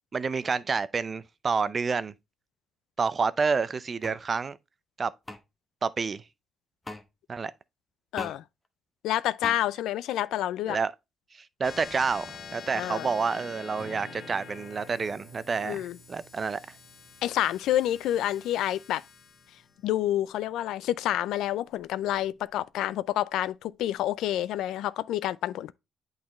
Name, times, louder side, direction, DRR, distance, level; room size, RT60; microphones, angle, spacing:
voice 1, 0.1-2.1 3.0-4.6 5.0-5.1 5.8-6.2 7.3-7.5 10.7-10.9 11.6-16.6, right 5 dB, 40° right, 0.4 m, -29 dB
sound 1, 4.0-4.2 5.3-5.4 6.8-7.0 8.2-8.4 9.4-9.6, left 2 dB, 15° left, 0.9 m, -38 dB
voice 2, 8.1-8.4 9.0-10.8 12.7-13.1 15.6-16.0 17.2-19.0 19.8-25.7, left 13 dB, 85° left, 0.3 m, -28 dB
sound 2, 11.6-22.5, left 6 dB, 50° left, 0.7 m, -47 dB
Acoustic guitar / Strum, 13.8-19.2, right 2 dB, 70° right, 1.5 m, -53 dB
8.6 x 4.0 x 3.0 m
cardioid pair, 90°, 0 cm